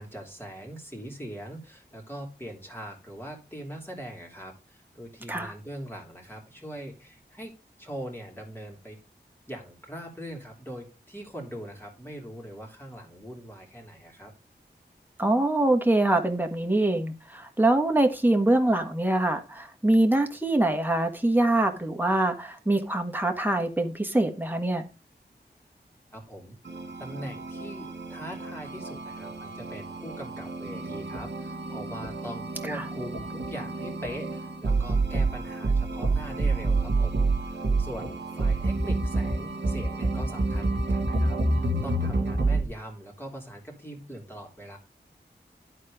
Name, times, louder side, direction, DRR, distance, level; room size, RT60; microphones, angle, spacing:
voice 1, 0.0-9.0 9.5-14.3 26.1-26.6 27.0-44.8, equal, 10° left, 3.2 m, -41 dB
voice 2, 15.2-24.9 32.7-32.8, right 1 dB, 10° right, 1.5 m, -24 dB
sound 1, 26.7-42.6, right 2 dB, 70° right, 1.8 m, -28 dB
11.5 x 4.3 x 4.9 m
wide cardioid pair, 80°, 18 cm